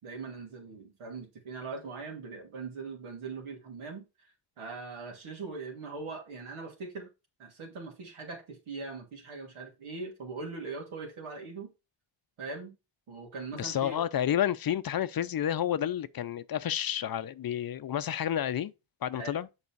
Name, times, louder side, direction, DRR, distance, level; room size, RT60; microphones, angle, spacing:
voice 1, 0.0-7.1 7.4-11.7 12.4-12.8 13.1-14.0 19.1-19.3, right 4 dB, 80° right, 2.9 m, -41 dB
voice 2, 13.5-18.7 19.0-19.5, left 10 dB, 50° left, 0.6 m, -30 dB
7.0 x 5.0 x 4.6 m
cardioid pair, 80°, 48 cm